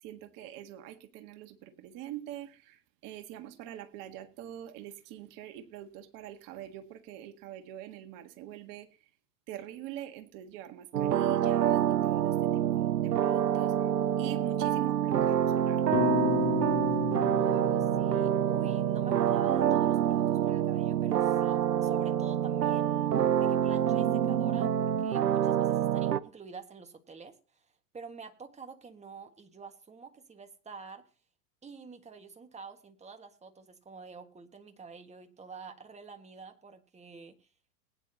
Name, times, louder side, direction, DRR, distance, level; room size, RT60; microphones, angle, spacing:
voice 1, 0.0-8.9 9.5-13.8 14.2-15.8, right 12 dB, 45° right, 1.7 m, -44 dB
sound 1, 10.9-26.2, right 10 dB, 90° right, 0.8 m, -27 dB
sound 2, 15.9-20.2, left 15 dB, 30° left, 0.8 m, -34 dB
voice 2, 17.4-23.1 23.4-27.6 27.9-31.1 31.6-37.5, right 5 dB, 15° right, 1.6 m, -48 dB
20.5 x 9.8 x 2.8 m
hypercardioid pair, 110°, 46 cm